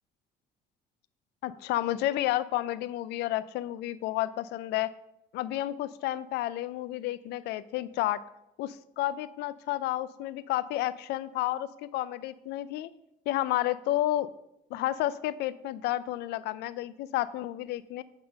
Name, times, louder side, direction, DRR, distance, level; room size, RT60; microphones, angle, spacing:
voice 1, 1.4-4.9 5.3-8.2 8.6-12.9 13.3-14.3 14.7-18.0, left 14 dB, 80° left, 16 dB, 0.4 m, -31 dB
8.0 x 3.7 x 5.3 m, 0.85 s
cardioid pair, 110°, 17 cm